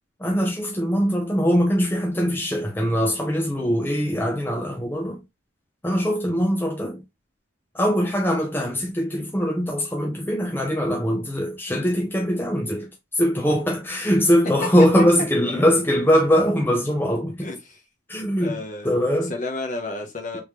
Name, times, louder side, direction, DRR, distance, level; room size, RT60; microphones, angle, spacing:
voice 1, 0.2-5.2 5.8-7.0 7.7-12.9 13.1-17.5 18.1-18.6 18.8-19.3 20.3-20.4, equal, 10° left, 0.6 m, -22 dB
voice 2, 17.4-17.8 18.4-19.0 19.3-20.4, left 2 dB, 40° left, 0.9 m, -32 dB
3.5 x 3.1 x 3.2 m
head